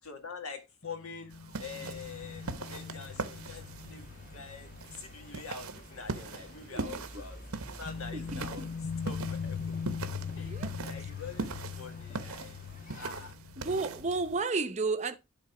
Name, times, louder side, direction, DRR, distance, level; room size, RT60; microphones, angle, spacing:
voice 1, 0.0-1.3 1.6-7.4 7.8-8.7 9.0-9.8 10.4-12.7 13.0-13.4, left 5 dB, 75° left, 1.9 m, -45 dB
sound 1, 0.8-6.2 6.5-6.7 7.8-14.4, left 6 dB, 55° left, 0.8 m, -41 dB
sound 2, 1.3-14.4, right 4 dB, 80° right, 0.9 m, -42 dB
sound 3, 1.9-13.3, left 1 dB, 35° left, 1.7 m, -51 dB
voice 2, 6.7-7.1 8.1-8.7 10.4-10.7 11.0-11.1 13.6-15.2, right 3 dB, 30° right, 0.7 m, -33 dB
11.5 x 3.9 x 4.9 m
head